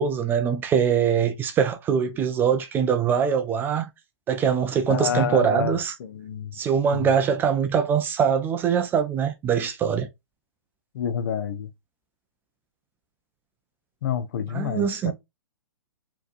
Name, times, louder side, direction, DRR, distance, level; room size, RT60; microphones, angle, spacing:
voice 1, 0.0-3.9 4.3-5.9 6.5-10.1 14.5-15.1, right 7 dB, 15° right, 0.3 m, -23 dB
voice 2, 4.9-6.5 6.9-7.1 10.9-11.7 14.0-15.1, left 8 dB, 45° left, 0.5 m, -28 dB
4.0 x 2.9 x 2.5 m
figure-of-eight pair, 125°, 15 cm